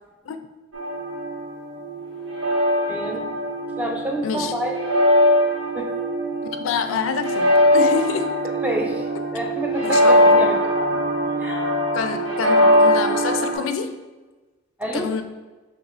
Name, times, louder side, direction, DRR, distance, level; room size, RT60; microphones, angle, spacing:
sound 1, 0.7-13.6, equal, 75° right, 0.8 m, -21 dB
voice 1, 2.9-3.3 3.8-4.8 5.7-5.9 8.6-9.1 9.3-10.5 10.9-11.0 11.4-11.6 14.8-15.1, equal, 5° right, 0 dB, 0.4 m, -28 dB
voice 2, 4.2-4.5 6.4-8.5 9.8-10.1 11.9-14.0 14.9-15.2, left 6 dB, 85° left, 8 dB, 0.4 m, -27 dB
6.0 x 3.1 x 2.5 m, 1.2 s
head